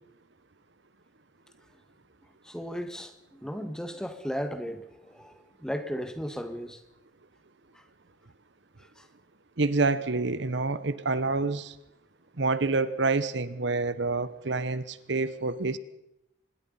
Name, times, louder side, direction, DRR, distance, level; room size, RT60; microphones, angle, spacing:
voice 1, 2.4-6.8 7.7-7.8 8.8-9.1, equal, 5° left, 1.8 m, -36 dB
voice 2, 9.6-11.7 12.4-15.8, right 3 dB, 65° right, 1.0 m, -27 dB
25.5 x 21.0 x 5.6 m
head